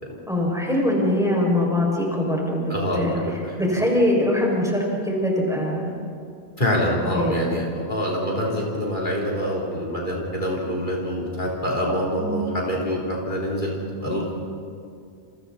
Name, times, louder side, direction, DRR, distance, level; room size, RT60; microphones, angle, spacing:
voice 1, 0.3-3.2 3.6-6.0 7.1-7.7 12.2-12.4, left 1 dB, 5° right, -3 dB, 6.1 m, -23 dB
voice 2, 2.7-3.1 3.4-3.6 6.6-14.4, equal, 50° left, -3 dB, 3.9 m, -25 dB
30.0 x 29.0 x 4.2 m, 2.4 s
omnidirectional pair, 1.1 m